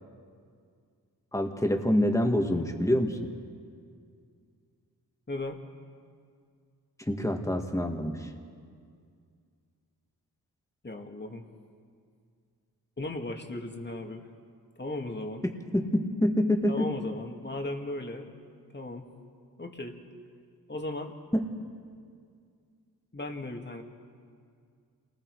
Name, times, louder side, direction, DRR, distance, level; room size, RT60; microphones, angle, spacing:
voice 1, 1.3-3.2 7.1-8.3 15.7-16.9 21.3-21.4, left 1 dB, 10° left, 4 dB, 2.1 m, -26 dB
voice 2, 5.3-5.6 10.8-11.5 13.0-14.3 14.8-15.4 16.7-18.3 18.7-19.1 19.6-20.0 20.7-21.1 23.1-23.8, left 2 dB, 30° left, 3 dB, 2.3 m, -36 dB
28.0 x 20.0 x 4.9 m, 2.2 s
cardioid pair, 65°, 38 cm